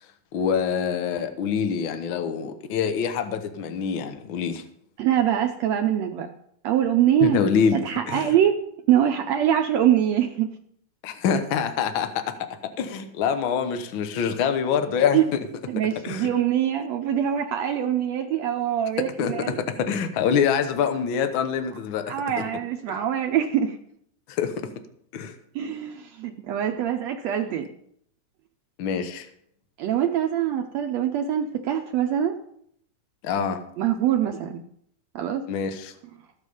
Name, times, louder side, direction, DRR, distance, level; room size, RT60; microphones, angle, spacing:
voice 1, 0.3-4.6 7.2-8.3 11.0-12.5 12.8-15.2 16.0-16.3 19.2-22.4 24.3-24.7 25.1-25.3 28.8-29.3 33.2-33.6 35.5-35.9, left 7 dB, 85° left, 8 dB, 1.1 m, -25 dB
voice 2, 5.0-6.3 6.6-7.4 7.7-8.6 8.9-10.5 15.1-15.2 15.7-19.6 22.1-23.8 25.5-27.7 29.8-32.4 33.8-34.6 35.1-35.4, right 10 dB, 75° right, 5 dB, 1.6 m, -23 dB
14.0 x 8.1 x 5.4 m, 0.69 s
omnidirectional pair, 3.7 m